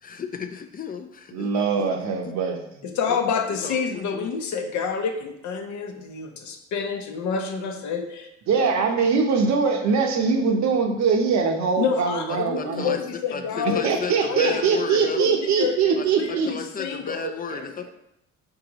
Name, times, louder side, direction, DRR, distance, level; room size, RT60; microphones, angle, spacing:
voice 1, 0.0-1.5 1.8-1.9 2.2-2.3 3.1-3.2 3.5-4.3 12.3-13.0 13.3-15.3 16.0-17.9, left 6 dB, 30° left, 7 dB, 0.4 m, -34 dB
voice 2, 1.3-2.6 8.5-12.9 13.6-16.5 17.2-17.6, right 5 dB, 65° right, 3 dB, 0.8 m, -22 dB
voice 3, 2.8-8.3 11.8-13.9 14.3-14.6 14.9-17.2, left 6 dB, 70° left, 4 dB, 0.7 m, -28 dB
3.9 x 3.7 x 2.9 m, 0.80 s
cardioid pair, 90°, 30 cm